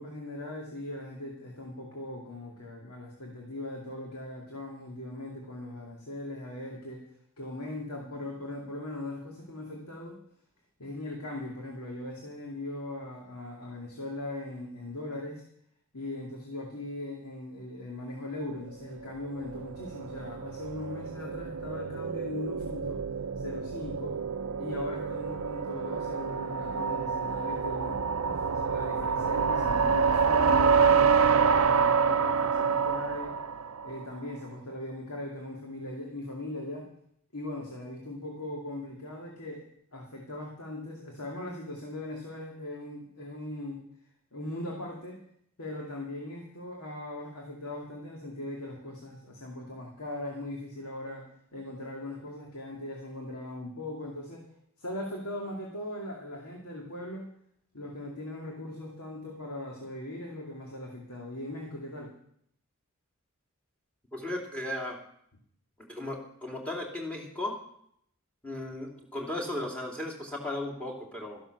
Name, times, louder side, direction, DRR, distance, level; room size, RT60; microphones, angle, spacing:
voice 1, 0.0-7.0 7.4-10.2 10.8-15.4 15.9-23.0 23.4-24.2 24.6-31.2 31.6-33.4 33.8-36.9 37.3-39.6 39.9-43.8 44.3-45.2 45.6-54.5 54.8-57.2 57.7-62.1, left 1 dB, 85° left, -1 dB, 2.4 m, -39 dB
sound 1, 18.8-34.1, right 6 dB, 65° right, 0.6 m, -27 dB
voice 2, 64.1-65.0 65.9-67.6 68.4-71.4, left 1 dB, 5° left, 0 dB, 2.7 m, -36 dB
13.5 x 11.0 x 6.6 m, 0.70 s
head